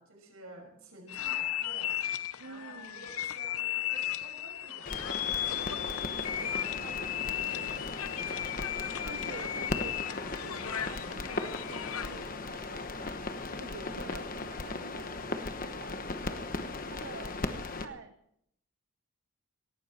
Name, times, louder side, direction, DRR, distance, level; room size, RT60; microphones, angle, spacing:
voice 1, 0.0-2.0 2.4-5.3, right 1 dB, 80° right, 1 dB, 5.8 m, -51 dB
sound 1, 1.1-12.3, left 11 dB, 80° left, 0.7 m, -35 dB
voice 2, 2.4-3.1 6.1-10.0 10.3-15.2 15.8-16.1 16.8-17.4 17.7-18.2, right 4 dB, 60° right, 9 dB, 0.7 m, -48 dB
sound 2, 4.9-17.9, left 3 dB, 40° left, 1.1 m, -37 dB
18.0 x 14.5 x 4.3 m, 0.74 s
head